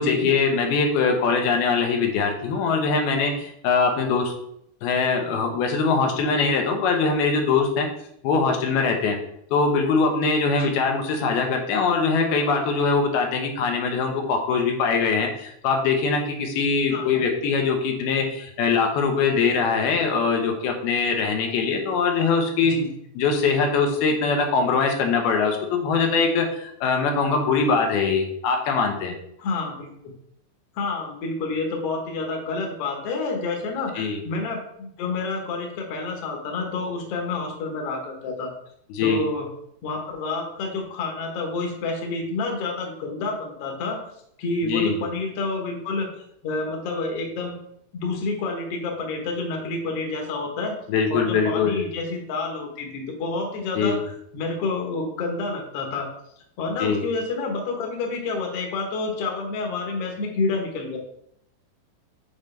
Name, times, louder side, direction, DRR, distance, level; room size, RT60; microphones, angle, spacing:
voice 1, 0.0-4.3 4.8-7.9 8.2-9.2 9.5-22.7 23.2-29.2 34.0-34.2 38.9-39.2 44.6-45.0 50.9-51.8 53.8-54.0 56.8-57.0, left 4 dB, 90° left, 3 dB, 2.9 m, -22 dB
voice 2, 29.4-29.9 30.8-38.5 39.0-39.5 39.8-44.0 44.4-46.1 46.4-47.5 47.9-50.7 51.1-56.1 56.6-61.0, left 3 dB, 60° left, 1 dB, 1.6 m, -29 dB
7.1 x 5.1 x 3.3 m, 0.73 s
omnidirectional pair, 4.3 m